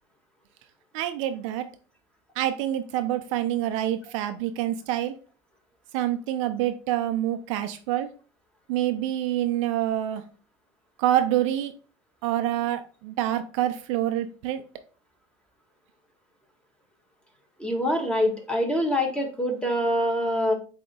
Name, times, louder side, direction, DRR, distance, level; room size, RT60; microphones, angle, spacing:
voice 1, 0.9-1.7 2.4-5.1 5.9-8.1 8.7-10.2 11.0-11.7 12.2-14.6, right 12 dB, 75° right, 9 dB, 0.5 m, -26 dB
voice 2, 17.6-20.5, equal, 5° left, 1 dB, 1.6 m, -25 dB
7.8 x 2.8 x 2.2 m, 0.36 s
hypercardioid pair, 80°, 16 cm